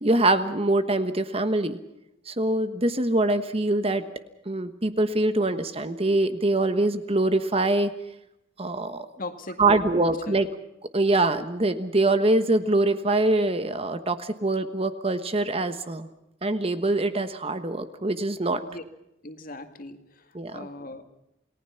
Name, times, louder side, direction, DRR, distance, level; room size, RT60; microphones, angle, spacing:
voice 1, 0.0-1.8 2.3-4.0 4.5-7.9 8.6-9.1 9.6-10.5 10.9-16.1 16.4-18.6 20.3-20.7, right 2 dB, 30° right, 10 dB, 1.2 m, -24 dB
voice 2, 9.2-10.4 18.6-18.8 19.2-21.1, left 2 dB, 45° left, 7 dB, 2.2 m, -39 dB
28.5 x 19.0 x 5.8 m, 0.85 s
head